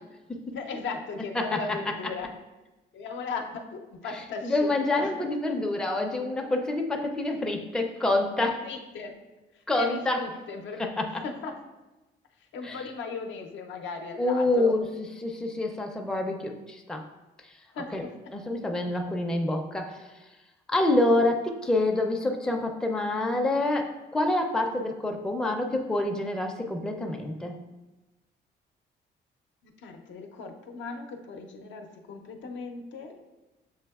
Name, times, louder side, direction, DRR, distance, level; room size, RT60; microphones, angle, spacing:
voice 1, 0.5-2.3 2.9-5.1 7.3-7.4 8.6-9.2 9.5-10.8 11.2-11.5 12.4-14.7 17.7-18.1 29.6-33.2, left 4 dB, 70° left, 4 dB, 0.6 m, -37 dB
voice 2, 4.4-8.6 9.7-10.2 10.8-11.2 12.6-12.8 14.2-14.8 15.2-17.1 17.4-17.5 17.9-18.0 18.3-20.1 20.7-27.6, left 2 dB, 5° left, 2 dB, 0.4 m, -27 dB
6.9 x 2.7 x 2.3 m, 1.1 s
cardioid pair, 90°, 20 cm